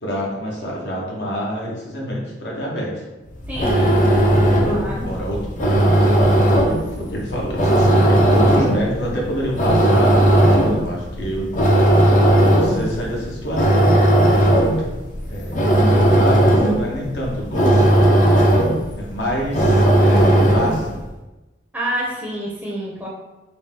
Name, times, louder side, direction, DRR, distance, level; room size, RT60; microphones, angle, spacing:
voice 1, 0.0-3.0 4.9-5.4 6.3-11.5 11.7-13.9 15.3-18.0 18.9-21.0, equal, 70° left, -3 dB, 1.0 m, -27 dB
sound 1, 3.3-20.9, right 1 dB, 45° left, 0.6 m, -16 dB
voice 2, 3.5-4.0 4.6-5.1 21.7-23.1, right 1 dB, 10° right, -6 dB, 0.6 m, -28 dB
4.1 x 2.2 x 3.7 m, 1.1 s
head